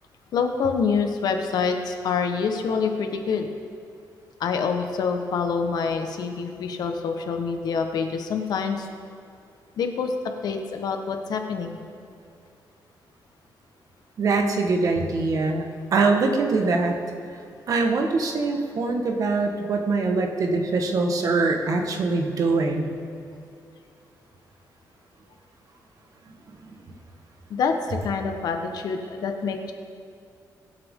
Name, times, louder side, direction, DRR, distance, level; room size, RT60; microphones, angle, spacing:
voice 1, 0.3-3.5 4.4-8.9 9.8-10.1 10.4-12.0 27.5-29.7, left 5 dB, 75° left, 5 dB, 1.2 m, -26 dB
voice 2, 14.2-15.6 15.9-17.0 17.7-22.9, right 3 dB, 55° right, 3 dB, 1.5 m, -23 dB
23.0 x 7.9 x 3.7 m, 2.4 s
cardioid pair, 125°, 7 cm